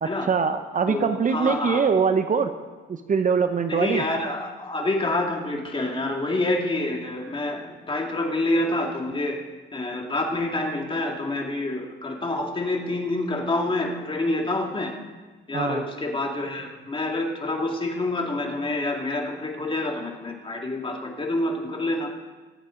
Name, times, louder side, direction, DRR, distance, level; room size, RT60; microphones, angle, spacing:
voice 1, 0.0-2.5 2.9-4.0 15.5-15.8, right 6 dB, 40° right, 9 dB, 0.8 m, -23 dB
voice 2, 0.9-1.8 3.7-9.4 9.7-15.0 15.5-22.1, left 2 dB, 25° left, 1 dB, 2.2 m, -27 dB
23.0 x 8.8 x 3.8 m, 1.3 s
cardioid pair, 90°, 20 cm